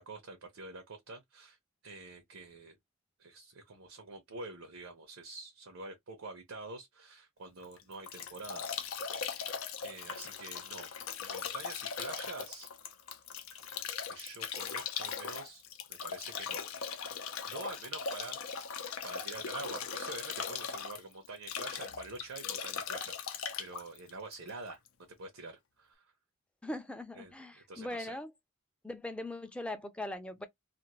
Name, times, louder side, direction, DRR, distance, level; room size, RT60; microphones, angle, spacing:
voice 1, 0.0-1.6 1.8-2.7 3.2-9.0 9.8-10.9 11.2-12.7 14.1-15.6 15.9-16.6 17.4-18.7 19.0-24.8 25.2-26.1 27.2-28.2, right 3 dB, 85° right, 0.7 m, -46 dB
Bathtub (filling or washing) / Drip / Trickle dribble, 7.6-24.9, left 6 dB, 90° left, 0.6 m, -39 dB
voice 2, 26.6-28.3 28.8-30.5, left 1 dB, 5° left, 0.4 m, -40 dB
2.5 x 2.4 x 2.9 m
head